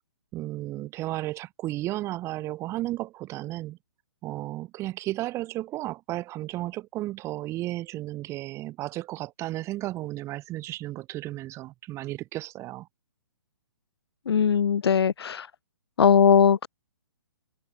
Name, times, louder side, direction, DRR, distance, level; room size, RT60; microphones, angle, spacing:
voice 1, 0.3-3.8 4.2-12.9, right 16 dB, 20° right, 1.1 m, -33 dB
voice 2, 14.3-15.5 16.0-16.7, left 7 dB, 85° left, 0.4 m, -20 dB
hypercardioid pair, 135°, 13 cm